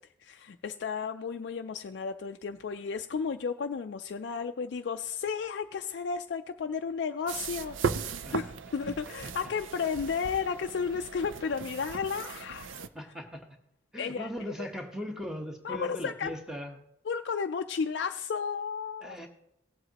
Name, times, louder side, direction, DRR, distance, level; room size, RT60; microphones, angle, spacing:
voice 1, 0.2-12.9 14.0-14.3 14.6-14.7 15.6-16.3 17.1-19.2, left 6 dB, 60° left, 6 dB, 0.3 m, -33 dB
sound 1, 7.3-12.9, right 5 dB, 85° right, 0.5 m, -37 dB
voice 2, 12.9-13.5 13.9-16.8 19.0-19.3, equal, 5° right, 3 dB, 1.0 m, -39 dB
18.0 x 7.8 x 2.9 m, 0.80 s
head